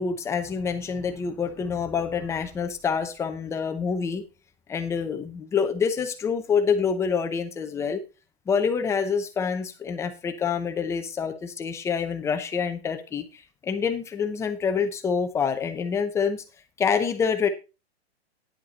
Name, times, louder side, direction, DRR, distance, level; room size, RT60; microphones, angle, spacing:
voice 1, 0.0-4.2 4.7-8.0 8.5-16.4 16.8-17.5, left 6 dB, 10° left, 7 dB, 0.7 m, -26 dB
10.5 x 7.6 x 4.1 m, 0.30 s
hypercardioid pair, 155°, 33 cm